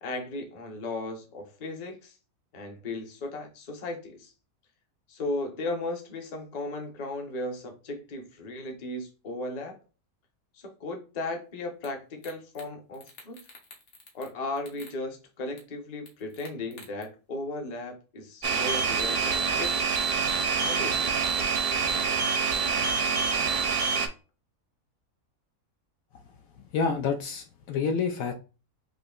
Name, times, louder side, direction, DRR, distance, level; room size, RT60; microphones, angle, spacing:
voice 1, 0.0-2.2 2.5-4.3 5.1-9.8 10.5-13.4 14.1-20.0 20.6-21.1, left 2 dB, 35° left, 3 dB, 0.7 m, -36 dB
sound 1, 11.8-11.9 12.2-12.7 12.9-14.3 14.6-15.0 15.6-15.7 16.1-17.0, left 3 dB, 50° left, 1.3 m, -49 dB
sound 2, 18.4-24.1, right 5 dB, 60° right, 0.6 m, -26 dB
voice 2, 26.7-28.3, left 5 dB, 70° left, 5 dB, 0.9 m, -28 dB
4.9 x 2.8 x 2.3 m, 0.33 s
omnidirectional pair, 1.6 m